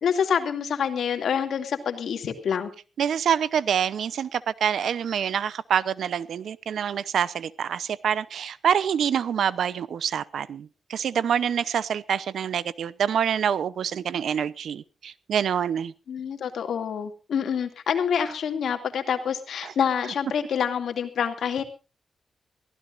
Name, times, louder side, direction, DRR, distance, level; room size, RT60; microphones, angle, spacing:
voice 1, 0.0-2.7 16.1-21.6, left 7 dB, 85° left, 6 dB, 2.4 m, -27 dB
voice 2, 3.0-15.9 19.6-19.7, right 8 dB, 85° right, 18 dB, 0.8 m, -26 dB
23.0 x 15.5 x 2.6 m, 0.31 s
wide cardioid pair, 100°, 0 cm